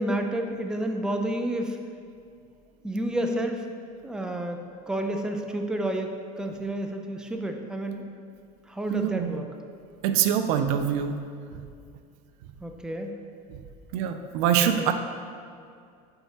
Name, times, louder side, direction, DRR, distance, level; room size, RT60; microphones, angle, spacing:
voice 1, 0.0-1.8 2.8-3.6 4.0-4.6 4.9-6.1 6.4-8.0 8.7-9.5 12.6-13.1 14.6-14.9, right 1 dB, 5° right, 4 dB, 0.5 m, -30 dB
voice 2, 8.9-9.3 10.0-11.2 11.5-11.6 13.5-13.6 13.9-14.9, right 9 dB, 70° right, 8 dB, 0.5 m, -24 dB
8.8 x 4.5 x 2.9 m, 2.3 s
supercardioid pair, 95°, 20 cm